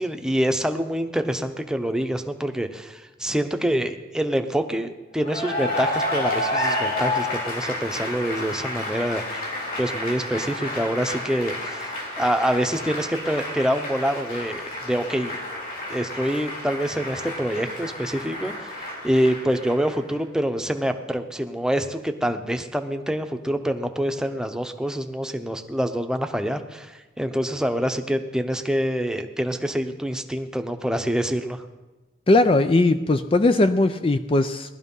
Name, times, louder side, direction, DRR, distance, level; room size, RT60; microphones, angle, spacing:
voice 1, 0.0-9.5 9.8-15.4 15.9-18.7 19.0-31.6, equal, 5° right, 6 dB, 0.9 m, -26 dB
Cheering / Applause, 5.2-20.1, left 1 dB, 50° left, 4.0 m, -30 dB
voice 2, 32.3-34.8, left 2 dB, 30° left, 9 dB, 0.5 m, -19 dB
18.5 x 12.5 x 5.5 m, 1.1 s
head